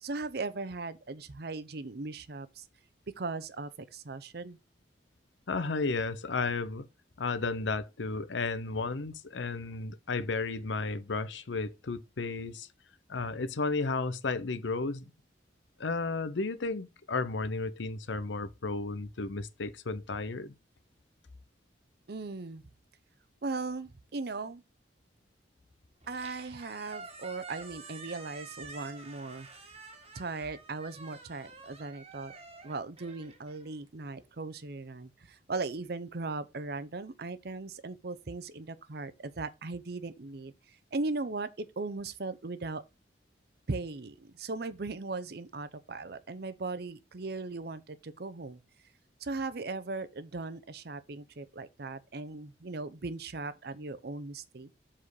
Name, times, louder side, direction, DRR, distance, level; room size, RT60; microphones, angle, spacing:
voice 1, 0.0-2.6 3.2-4.6 22.1-22.6 23.4-24.6 26.1-29.5 30.1-32.3 32.6-40.5 40.9-42.8 43.7-48.6 49.2-54.7, right 3 dB, 60° right, 0.7 m, -38 dB
voice 2, 5.5-6.9 7.2-12.7 13.1-15.1 15.8-20.6, left 3 dB, 90° left, 0.7 m, -33 dB
Squeak, 26.0-34.2, right 4 dB, 35° right, 1.5 m, -49 dB
7.4 x 4.3 x 4.7 m
head